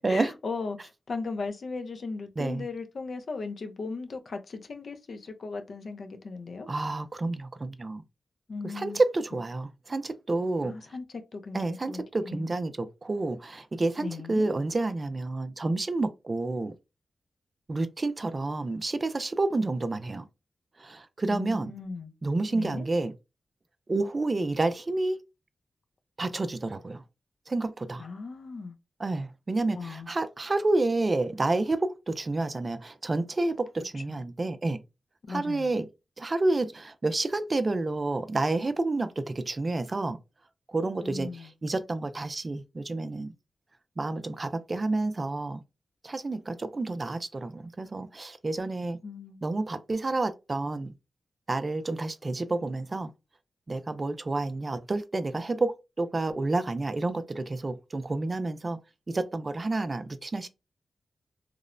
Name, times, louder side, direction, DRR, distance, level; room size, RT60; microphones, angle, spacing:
voice 1, 0.0-6.7 8.5-9.0 10.6-12.5 14.0-14.5 21.3-22.1 22.5-22.8 28.0-28.8 29.7-30.1 34.1-34.2 35.2-35.7 41.0-41.5 49.0-49.4, left 4 dB, 65° left, 0.5 m, -37 dB
voice 2, 6.7-8.0 8.6-10.8 11.5-16.7 17.7-20.2 20.8-21.7 22.2-23.1 23.9-25.2 26.2-27.0 27.5-28.0 29.0-34.8 35.3-35.9 36.2-40.2 40.7-43.3 44.0-45.6 46.0-49.0 49.4-50.9 51.5-53.1 53.7-58.8 59.1-60.5, right 2 dB, 40° right, 0.3 m, -29 dB
3.0 x 2.0 x 2.4 m
cardioid pair, 65°, 0 cm